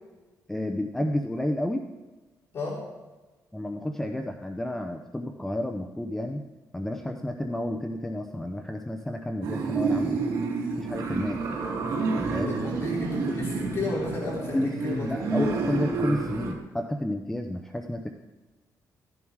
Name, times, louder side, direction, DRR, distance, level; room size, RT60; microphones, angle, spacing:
voice 1, 0.5-1.9 3.5-6.4 6.7-10.2 10.8-11.4 12.3-12.5 14.5-18.1, left 1 dB, 5° left, 4 dB, 0.7 m, -31 dB
voice 2, 2.5-2.9 12.3-15.6, left 3 dB, 40° left, -5 dB, 3.5 m, -33 dB
sound 1, 9.4-16.5, right 4 dB, 80° right, 3.1 m, -29 dB
15.5 x 11.0 x 4.7 m, 1.2 s
cardioid pair, 150°, 6 cm